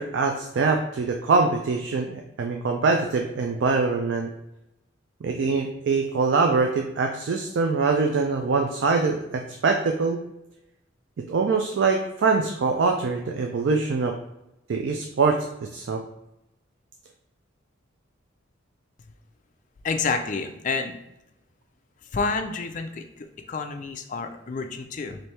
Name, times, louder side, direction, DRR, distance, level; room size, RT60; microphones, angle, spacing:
voice 1, 0.0-4.3 5.2-10.2 11.3-14.1 14.7-15.5 15.7-16.0, right 4 dB, 65° right, 3 dB, 0.4 m, -23 dB
voice 2, 19.8-21.0 22.1-25.2, left 4 dB, 40° left, 6 dB, 0.4 m, -29 dB
4.3 x 2.6 x 3.2 m, 0.90 s
head